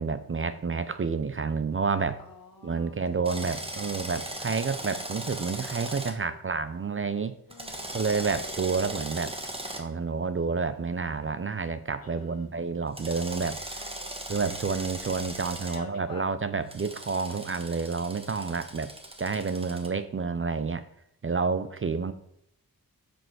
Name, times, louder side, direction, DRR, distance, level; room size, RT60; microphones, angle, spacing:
voice 1, 0.0-2.2 2.6-7.4 7.9-9.4 9.8-13.8 14.3-18.9 19.2-20.9 21.2-22.1, right 4 dB, 35° right, 12 dB, 0.5 m, -29 dB
voice 2, 2.2-3.0 3.3-3.7 5.8-6.4 7.5-8.1 12.0-12.5 13.8-14.2 15.6-16.3, left 4 dB, 65° left, 4 dB, 1.7 m, -49 dB
Drill, 3.2-6.1 7.5-9.8 12.9-15.8 16.7-19.9, right 1 dB, 15° right, 1.2 m, -38 dB
7.8 x 5.2 x 6.2 m, 0.74 s
wide cardioid pair, 140°, 37 cm